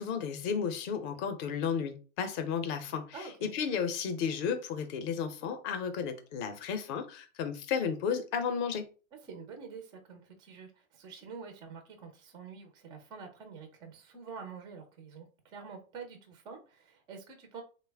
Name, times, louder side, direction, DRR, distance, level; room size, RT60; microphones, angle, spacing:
voice 1, 0.0-3.2 3.4-8.9, left 6 dB, 35° left, 0.6 m, -33 dB
voice 2, 3.1-3.5 9.2-17.6, right 5 dB, 15° right, 0.3 m, -47 dB
3.2 x 2.1 x 3.3 m
hypercardioid pair, 130°, 39 cm